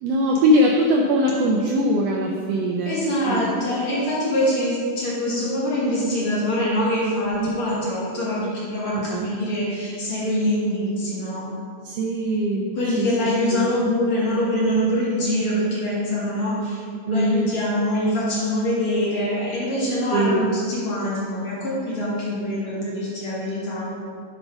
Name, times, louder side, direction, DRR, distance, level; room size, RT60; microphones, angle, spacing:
voice 1, 0.0-3.0 3.3-3.5 7.4-7.5 8.9-9.3 11.8-12.7 13.0-13.1 13.5-13.7 17.1-17.5 20.1-20.5, equal, 80° right, 0 dB, 1.5 m, -21 dB
voice 2, 2.8-11.5 12.8-16.8 17.1-23.9, equal, 45° left, -8 dB, 2.7 m, -24 dB
7.7 x 4.0 x 5.8 m, 2.2 s
omnidirectional pair, 3.5 m